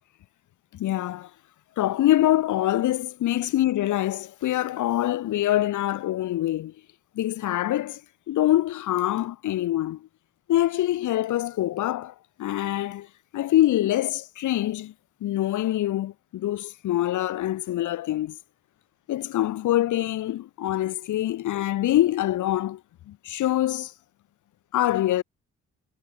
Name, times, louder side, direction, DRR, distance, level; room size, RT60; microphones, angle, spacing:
voice 1, 0.7-1.3 1.8-6.7 7.2-8.0 8.3-10.0 10.5-13.1 13.3-14.9 15.2-18.4 19.1-22.8 23.1-23.9 24.7-25.2, left 14 dB, 75° left, 1.8 m, -25 dB
cardioid pair, 90°, 30 cm